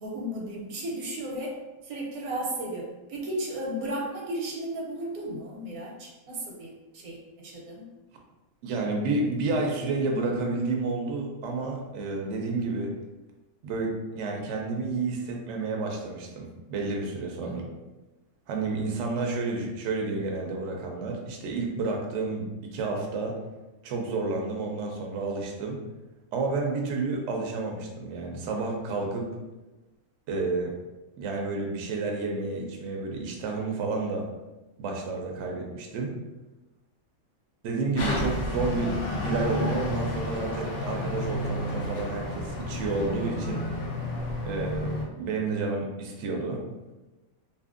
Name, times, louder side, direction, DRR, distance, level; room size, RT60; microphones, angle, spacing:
voice 1, 0.0-1.5 1.8-7.8 17.4-17.6, right 1 dB, 85° right, -2 dB, 1.2 m, -34 dB
voice 2, 8.6-12.9 13.6-17.6 18.5-23.4 23.8-25.8 26.3-29.3 30.3-30.7 31.2-34.3 34.8-36.1 37.6-43.7 44.4-46.6, right 3 dB, 65° right, 1 dB, 0.7 m, -30 dB
sound 1, 38.0-45.1, left 1 dB, 65° left, 0.8 m, -31 dB
2.7 x 2.5 x 2.4 m, 1.1 s
omnidirectional pair, 1.5 m